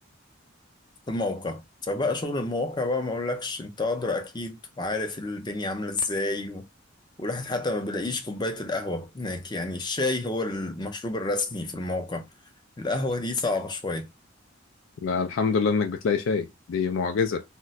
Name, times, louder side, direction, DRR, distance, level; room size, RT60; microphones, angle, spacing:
voice 1, 1.1-6.6 7.2-12.2 12.8-14.1, left 2 dB, 20° left, 0.5 m, -29 dB
voice 2, 15.0-17.4, left 5 dB, 80° left, 0.4 m, -25 dB
2.3 x 2.1 x 3.9 m
head